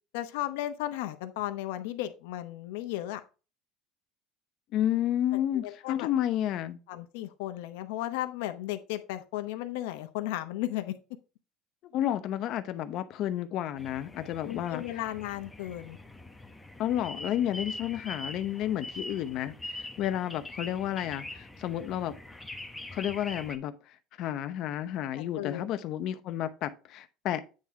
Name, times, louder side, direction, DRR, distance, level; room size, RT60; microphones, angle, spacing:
voice 1, 0.1-3.2 5.3-6.1 6.9-11.0 14.2-16.0 25.2-25.6, left 14 dB, 90° left, 0.9 m, -35 dB
voice 2, 4.7-6.8 11.8-14.8 16.8-22.1 22.9-27.4, left 11 dB, 55° left, 0.8 m, -31 dB
sound 1, 13.8-23.6, left 2 dB, 5° left, 0.8 m, -43 dB
9.0 x 3.8 x 4.4 m
cardioid pair, 140°, 0 cm